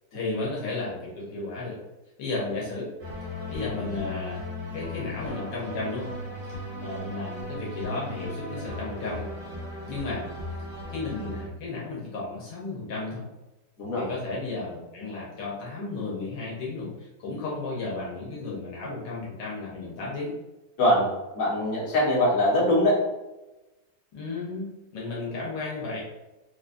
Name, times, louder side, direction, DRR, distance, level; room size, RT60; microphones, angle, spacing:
voice 1, 0.1-1.8 2.2-2.9 3.5-4.5 4.7-6.1 6.8-9.2 9.9-10.3 10.9-13.2 14.0-20.3 24.1-26.0, left 3 dB, 80° left, -5 dB, 1.5 m, -33 dB
sound 1, 3.0-11.5, left 1 dB, 50° right, 1.1 m, -36 dB
voice 2, 20.8-21.1 21.3-23.0, left 1 dB, 55° left, -6 dB, 1.5 m, -22 dB
4.7 x 2.4 x 2.5 m, 1.0 s
omnidirectional pair, 1.9 m